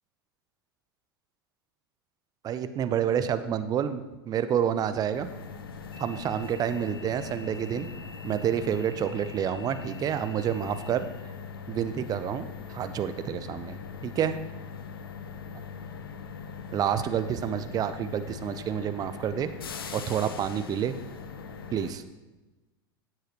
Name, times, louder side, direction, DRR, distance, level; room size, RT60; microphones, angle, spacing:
voice 1, 2.4-5.3 6.0-7.9 8.2-11.1 11.7-14.4 16.7-19.5 19.9-21.0 21.7-22.0, right 9 dB, 30° right, 11 dB, 0.8 m, -29 dB
sound 1, 5.1-21.9, left 6 dB, 70° left, 0.9 m, -41 dB
16.5 x 7.8 x 3.1 m, 1.1 s
figure-of-eight pair, 85°, 12 cm